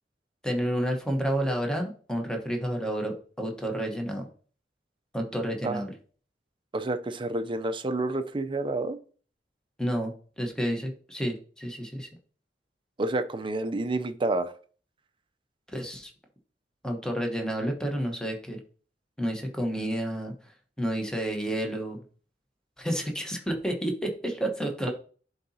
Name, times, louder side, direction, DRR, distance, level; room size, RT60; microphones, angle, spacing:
voice 1, 0.4-4.3 5.1-5.9 9.8-12.1 15.7-16.1 16.8-18.6 19.2-20.5 20.8-22.0 22.8-24.9, equal, 5° left, 2 dB, 1.1 m, -30 dB
voice 2, 6.7-9.0 13.0-14.5, right 2 dB, 30° right, 9 dB, 0.5 m, -29 dB
11.0 x 4.0 x 2.8 m, 0.42 s
head